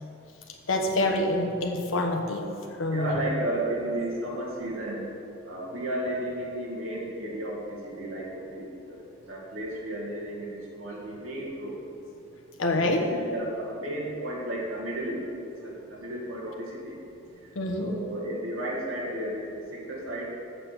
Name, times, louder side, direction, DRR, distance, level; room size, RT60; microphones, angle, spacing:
voice 1, 0.7-2.4 2.8-3.2 12.6-13.0 17.5-17.9, left 1 dB, 70° left, 1 dB, 1.1 m, -26 dB
voice 2, 2.9-5.1 5.5-11.8 12.8-15.3 15.6-17.0 17.4-17.5 17.8-20.3, right 1 dB, 75° right, -4 dB, 2.2 m, -33 dB
7.5 x 6.7 x 6.8 m, 2.7 s
head